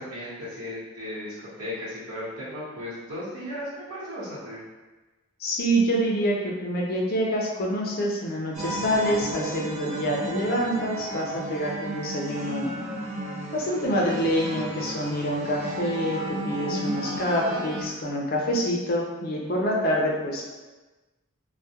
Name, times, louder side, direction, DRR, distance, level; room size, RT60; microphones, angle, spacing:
voice 1, 0.0-4.6, left 1 dB, 80° right, -9 dB, 1.0 m, -36 dB
voice 2, 5.4-12.7 13.5-20.4, equal, 45° left, -2 dB, 0.4 m, -26 dB
sound 1, 8.5-17.8, right 1 dB, 35° right, 0.3 m, -34 dB
2.3 x 2.1 x 2.7 m, 1.2 s
head